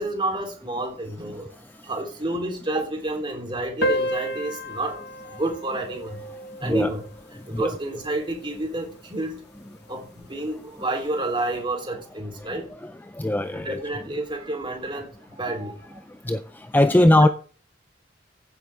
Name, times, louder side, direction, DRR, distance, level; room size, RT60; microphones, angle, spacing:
voice 1, 0.0-1.5 1.8-6.2 6.6-7.0 7.5-9.4 9.9-12.7 13.5-16.0 17.0-17.3, right 2 dB, 25° right, 3.7 m, -30 dB
sound 1, 3.8-8.8, equal, 60° left, 1.0 m, -32 dB
voice 2, 13.1-13.8 16.3-16.4 16.7-17.3, left 1 dB, 10° left, 0.4 m, -19 dB
15.5 x 8.5 x 3.6 m
head